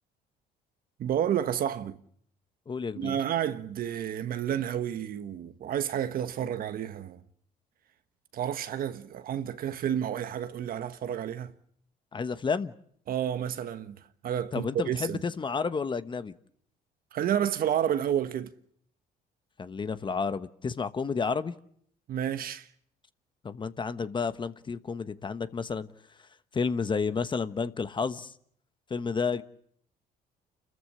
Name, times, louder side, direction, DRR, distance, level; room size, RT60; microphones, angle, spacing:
voice 1, 1.0-2.0 3.0-7.2 8.3-11.5 13.1-15.2 17.1-18.5 22.1-22.7, right 10 dB, 60° right, 1.4 m, -30 dB
voice 2, 2.7-3.2 12.1-12.7 14.5-16.3 19.6-21.5 23.4-25.9 26.5-28.3 28.9-29.4, left 5 dB, 30° left, 1.2 m, -31 dB
29.0 x 14.5 x 9.9 m
cardioid pair, 110°, 17 cm